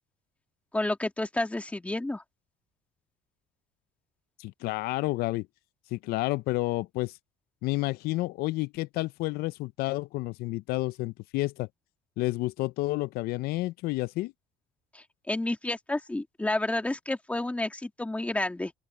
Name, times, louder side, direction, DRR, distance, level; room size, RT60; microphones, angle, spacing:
voice 1, 0.7-2.2 14.9-18.7, left 2 dB, 10° left, 2.1 m, -30 dB
voice 2, 4.4-5.5 5.9-7.1 7.6-11.7 12.2-14.3, left 19 dB, 70° left, 0.5 m, -30 dB
open air
cardioid pair, 125°, 16 cm